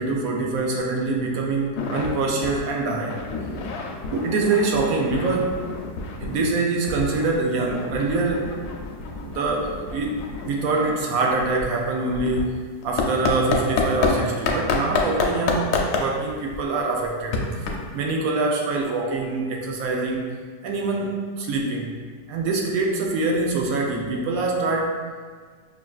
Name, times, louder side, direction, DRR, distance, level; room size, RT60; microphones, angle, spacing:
voice 1, 0.0-3.2 4.1-5.6 6.2-8.5 9.0-10.1 10.4-12.6 12.8-17.6 17.9-20.3 20.6-21.9 22.3-25.0, right 3 dB, 70° right, 0 dB, 0.9 m, -24 dB
sound 1, 1.7-2.1 2.4-2.6 2.9-6.5 6.9-14.1 14.5-18.1, left 5 dB, 75° left, 1.1 m, -28 dB
5.8 x 2.5 x 2.3 m, 1.5 s
omnidirectional pair, 1.7 m